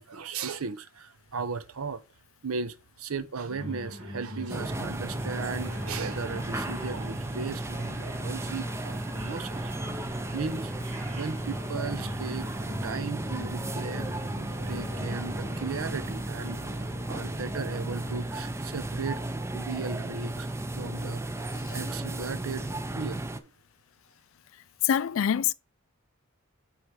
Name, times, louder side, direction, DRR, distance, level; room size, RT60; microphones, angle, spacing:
voice 1, 0.0-2.0 2.4-10.7 11.1-12.5 12.8-14.1 14.5-16.6 17.1-21.2 21.7-23.5, right 5 dB, 85° right, 0.7 m, -36 dB
sound 1, 3.5-18.1, equal, 55° right, 1.5 m, -41 dB
sound 2, 4.5-23.4, right 1 dB, 15° right, 0.4 m, -34 dB
voice 2, 24.8-25.5, left 9 dB, 65° left, 0.3 m, -24 dB
8.0 x 3.2 x 4.7 m
head